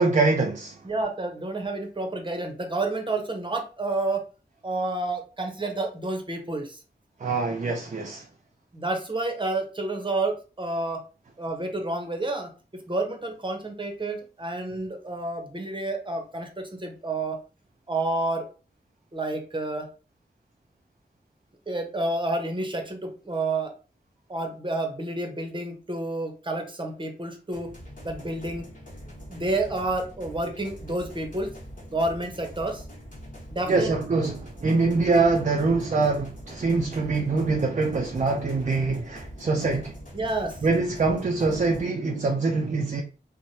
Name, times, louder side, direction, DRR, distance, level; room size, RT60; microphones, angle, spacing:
voice 1, 0.0-0.8 7.2-8.3 33.7-39.9 40.6-43.0, right 3 dB, 45° right, 0.4 m, -24 dB
voice 2, 0.8-4.2 4.6-6.8 8.7-11.0 11.4-17.4 17.9-18.4 19.1-19.8 21.7-23.7 24.3-27.7 28.0-28.6 29.3-31.5 31.9-32.8 33.5-33.9 40.1-40.5, right 2 dB, 25° right, 0.7 m, -29 dB
sound 1, 27.5-41.8, equal, 50° left, 1.1 m, -43 dB
3.1 x 2.1 x 2.7 m
wide cardioid pair, 60°, 18 cm